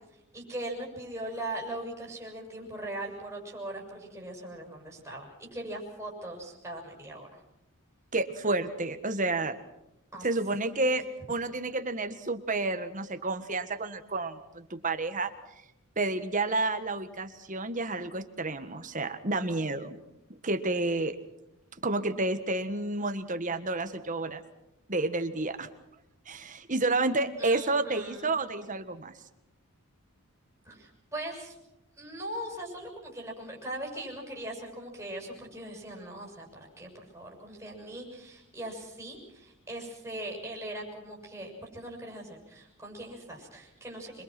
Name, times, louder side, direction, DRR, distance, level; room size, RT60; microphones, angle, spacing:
voice 1, 0.3-7.3 10.1-10.3 10.8-11.0 27.4-28.3 30.6-31.6 32.0-44.2, right 1 dB, 10° right, -1 dB, 6.6 m, -40 dB
voice 2, 8.1-9.6 10.2-15.3 16.0-20.0 20.4-21.1 21.8-24.4 24.9-25.7 26.3-29.1, right 2 dB, 35° right, 8 dB, 1.6 m, -30 dB
26.5 x 22.5 x 6.1 m, 0.87 s
head